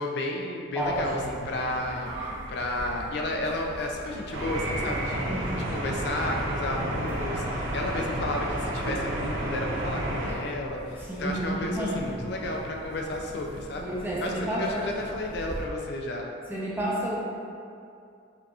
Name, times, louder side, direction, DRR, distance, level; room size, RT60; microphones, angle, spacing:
voice 1, 0.0-2.1 2.5-5.3 5.7-13.8 14.2-16.3, left 1 dB, 55° left, 0 dB, 0.3 m, -32 dB
voice 2, 0.7-1.4 5.2-5.8 11.0-12.2 13.8-14.9 16.5-17.2, right 1 dB, 10° right, -7 dB, 0.6 m, -31 dB
sound 1, 0.8-15.6, equal, 65° right, 1.4 m, -43 dB
sound 2, 4.3-10.3, right 1 dB, 85° right, 0.5 m, -31 dB
5.1 x 2.7 x 2.3 m, 2.5 s
head